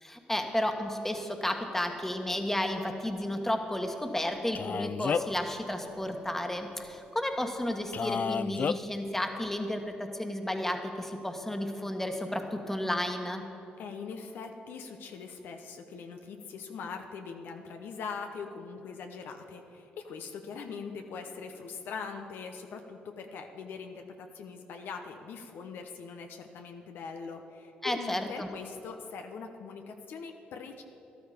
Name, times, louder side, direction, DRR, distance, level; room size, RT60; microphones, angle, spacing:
voice 1, 0.0-13.4 27.8-28.5, left 1 dB, 10° left, 4 dB, 1.6 m, -32 dB
Male speech man speaking, 4.5-5.4 7.9-8.8, left 6 dB, 45° left, 0.4 m, -30 dB
voice 2, 13.8-30.8, left 5 dB, 70° left, 5 dB, 0.9 m, -42 dB
13.0 x 12.0 x 5.1 m, 3.0 s
supercardioid pair, 60°, 4 cm